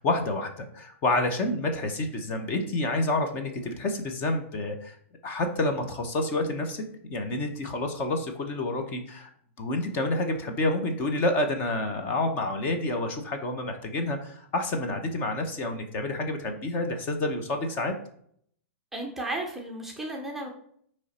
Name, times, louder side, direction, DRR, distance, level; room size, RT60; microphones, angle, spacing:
voice 1, 0.0-5.0 5.2-6.8 7.1-9.3 9.6-17.9, left 2 dB, 30° left, 5 dB, 0.9 m, -28 dB
voice 2, 18.9-20.5, right 2 dB, 5° right, 0 dB, 0.7 m, -34 dB
9.1 x 3.2 x 4.3 m, 0.65 s
hypercardioid pair, 155°, 7 cm